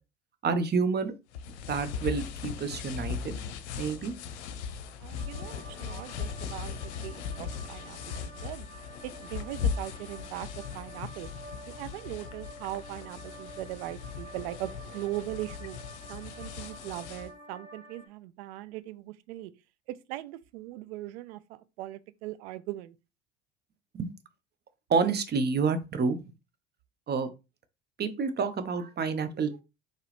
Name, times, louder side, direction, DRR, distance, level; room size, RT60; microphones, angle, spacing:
voice 1, 0.4-1.1 1.6-3.4 3.8-4.1 23.9-24.1 24.9-26.2 27.1-27.3 28.0-29.6, right 5 dB, 30° right, 0.7 m, -28 dB
sound 1, 1.3-17.3, left 6 dB, 70° left, 0.6 m, -38 dB
voice 2, 5.0-8.7 9.0-11.3 11.7-15.8 16.1-19.5 19.9-23.0, right 15 dB, 65° right, 0.5 m, -40 dB
sound 2, 5.2-18.1, right 1 dB, 80° right, 1.4 m, -49 dB
4.5 x 3.1 x 3.3 m
figure-of-eight pair, 65°, 35 cm